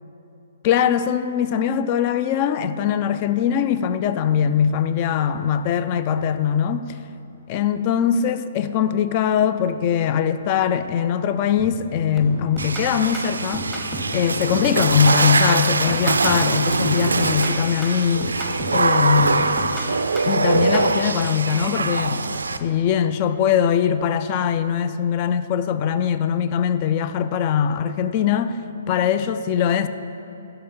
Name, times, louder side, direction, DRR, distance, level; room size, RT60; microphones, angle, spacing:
voice 1, 0.6-6.9 7.5-13.7 14.1-18.4 18.7-19.6 20.3-22.3 22.6-28.6 28.9-29.9, left 8 dB, 40° left, 0.3 m, -21 dB
sound 1, 11.6-11.9 12.2-14.2 14.5-16.5 16.8-18.9 19.2-20.9, equal, 5° left, 1.1 m, -33 dB
Water / Splash splatter, 12.6-22.6, right 4 dB, 80° right, 0.3 m, -22 dB
11.0 x 3.8 x 4.3 m
figure-of-eight pair, 130°, 0 cm